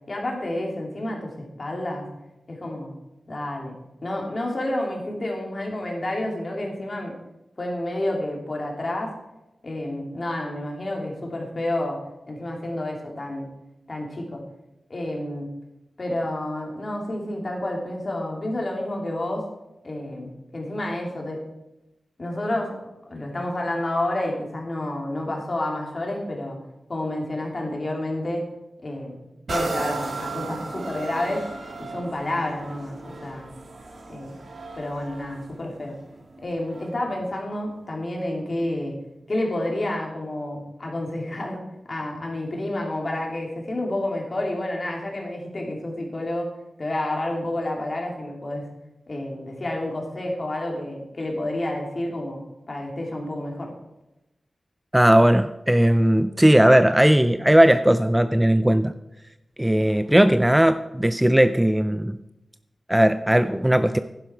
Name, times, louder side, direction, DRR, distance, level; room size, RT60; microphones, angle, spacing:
voice 1, 0.1-2.1 2.5-2.9 3.3-3.8 4.0-7.1 7.6-9.2 9.6-12.0 12.3-13.5 13.9-14.4 14.9-15.5 16.0-19.4 19.8-21.4 22.2-22.8 23.1-26.6 26.9-28.5 28.8-29.2 29.5-31.4 31.8-33.5 34.1-34.4 34.7-35.9 36.4-39.0 39.3-46.5 46.8-48.7 49.1-52.4 52.7-53.7, left 1 dB, 40° left, 0 dB, 2.9 m, -29 dB
sound 1, 29.5-37.1 37.7-37.8, right 3 dB, 60° right, 1.9 m, -35 dB
voice 2, 54.9-58.9 59.6-62.2 62.9-64.0, right 1 dB, 10° right, 11 dB, 0.4 m, -18 dB
11.0 x 11.0 x 4.4 m, 0.94 s
wide cardioid pair, 100°, 0 cm